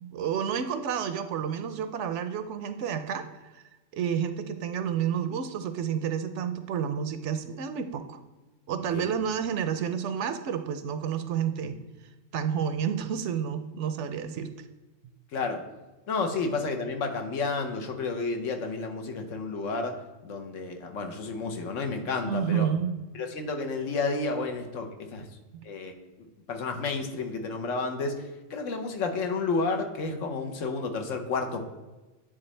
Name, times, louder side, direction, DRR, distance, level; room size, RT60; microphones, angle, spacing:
voice 1, 0.0-3.6 3.9-8.2 8.7-11.8 12.3-14.5 22.2-22.9, right 8 dB, 70° right, 10 dB, 0.8 m, -30 dB
voice 2, 8.8-9.1 15.3-15.6 16.1-19.9 20.2-22.7 23.1-25.3 25.6-25.9 26.5-31.7, left 4 dB, 75° left, 5 dB, 1.2 m, -31 dB
9.7 x 3.9 x 3.2 m, 1.2 s
omnidirectional pair, 1.3 m